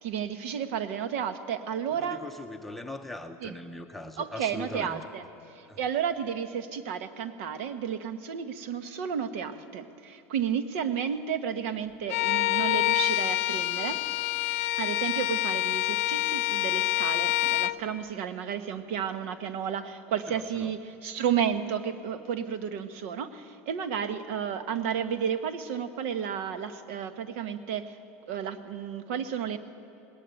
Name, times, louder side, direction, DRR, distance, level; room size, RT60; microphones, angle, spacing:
voice 1, 0.0-2.2 3.4-3.5 4.2-5.2 5.5-14.0 14.8-28.0 28.3-29.6, right 8 dB, 75° right, 10 dB, 1.3 m, -32 dB
voice 2, 1.9-5.1 5.7-5.8 20.3-20.7, left 2 dB, ahead, 3 dB, 0.7 m, -41 dB
Bowed string instrument, 12.1-17.8, left 16 dB, 85° left, 0.4 m, -27 dB
19.5 x 19.0 x 9.1 m, 2.7 s
supercardioid pair, 145°, 7 cm